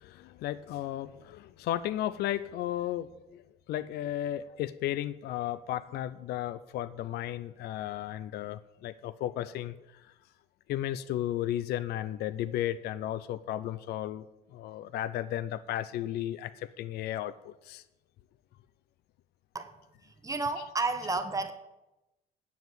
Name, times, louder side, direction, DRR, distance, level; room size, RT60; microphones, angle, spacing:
voice 1, 0.0-3.4 3.7-10.0 10.7-14.2 14.5-17.8 20.5-20.7, left 12 dB, 70° left, 15 dB, 0.5 m, -34 dB
voice 2, 20.0-21.5, right 3 dB, 20° right, 8 dB, 0.9 m, -32 dB
9.3 x 7.1 x 8.0 m, 0.99 s
cardioid pair, 110°, 17 cm